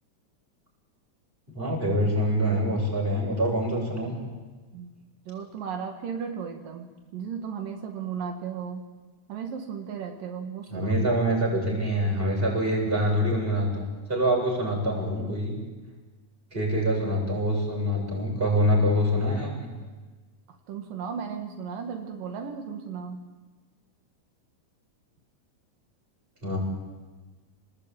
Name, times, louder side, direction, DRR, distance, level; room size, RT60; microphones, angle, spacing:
voice 1, 1.5-4.2 10.7-13.8 14.1-15.5 16.5-19.7 26.4-26.6, equal, 15° right, -2 dB, 7.8 m, -25 dB
voice 2, 5.3-8.8 9.3-10.9 20.7-23.2, right 6 dB, 85° right, 3 dB, 3.7 m, -35 dB
29.0 x 19.5 x 9.1 m, 1.3 s
omnidirectional pair, 3.8 m